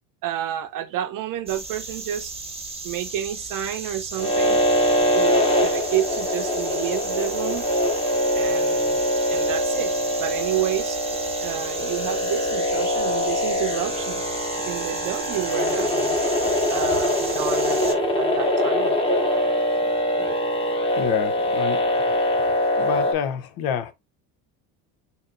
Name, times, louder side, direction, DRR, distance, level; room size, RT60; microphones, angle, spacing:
voice 1, 0.2-2.3 2.8-4.6 5.1-7.7 8.3-9.0 9.3-9.9 10.2-11.0 11.4-14.2 14.7-16.3 16.7-18.9, right 12 dB, 45° right, 0.8 m, -30 dB
sound 1, 1.5-17.9, right 3 dB, 15° right, 1.1 m, -35 dB
sound 2, 4.2-23.1, left 1 dB, 10° left, 1.3 m, -23 dB
voice 2, 21.0-21.9 22.8-23.9, left 8 dB, 55° left, 0.9 m, -27 dB
4.1 x 2.8 x 3.7 m
supercardioid pair, 105°, 44 cm